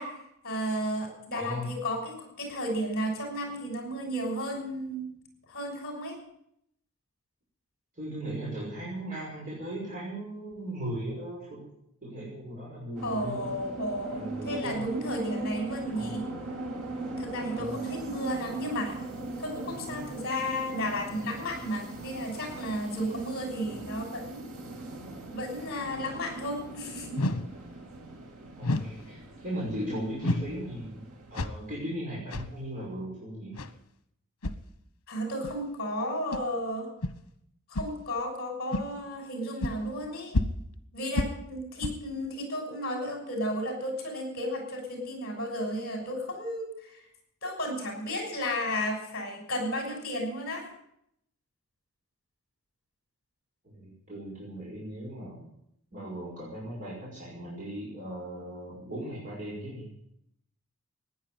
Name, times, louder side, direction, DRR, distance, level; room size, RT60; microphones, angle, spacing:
voice 1, 0.0-5.1 5.5-6.2 13.0-16.3 17.2-19.0 19.4-24.5 25.3-27.2 35.1-36.9 37.7-40.4 40.9-47.0 47.4-50.7, equal, 50° left, 3 dB, 6.4 m, -33 dB
voice 2, 1.3-1.7 8.0-11.6 12.0-13.5 13.9-14.9 15.9-16.2 17.5-17.8 28.6-31.0 31.3-33.6 53.6-55.4 55.9-59.9, right 1 dB, 40° right, -5 dB, 5.8 m, -38 dB
sound 1, 12.9-31.4, right 2 dB, 75° right, 2.9 m, -40 dB
sound 2, 27.2-27.5 28.6-29.0 30.2-30.6 31.3-31.7 32.3-32.5 33.6-33.7 34.4-34.6 35.4-35.5 36.3-36.4 37.0-37.1 37.7-38.0 38.7-38.9 39.6-39.8 40.3-40.7 41.2-41.4 41.8-42.0, left 2 dB, 80° left, 1.2 m, -29 dB
15.5 x 10.5 x 9.0 m, 0.76 s
head